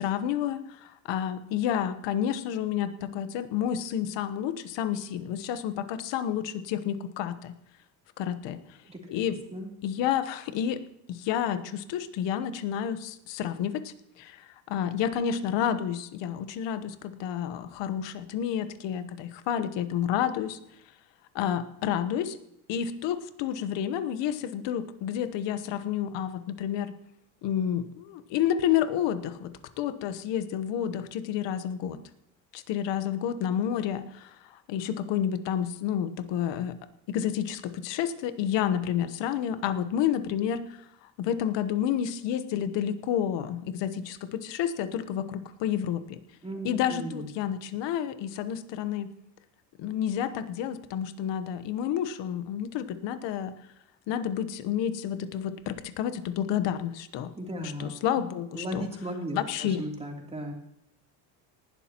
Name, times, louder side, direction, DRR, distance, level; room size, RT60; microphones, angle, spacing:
voice 1, 0.0-7.6 8.2-8.6 9.1-9.4 9.8-10.8 11.1-20.6 21.3-22.4 22.7-26.9 27.4-32.0 32.5-36.8 37.1-46.2 46.6-49.1 49.8-53.5 54.1-57.3 57.6-58.8 59.3-59.8, left 9 dB, 65° left, 11 dB, 1.2 m, -30 dB
voice 2, 46.4-47.2 57.4-57.9 58.5-60.5, equal, 10° right, 0 dB, 3.1 m, -36 dB
19.0 x 12.0 x 3.0 m, 0.81 s
supercardioid pair, 100°, 48 cm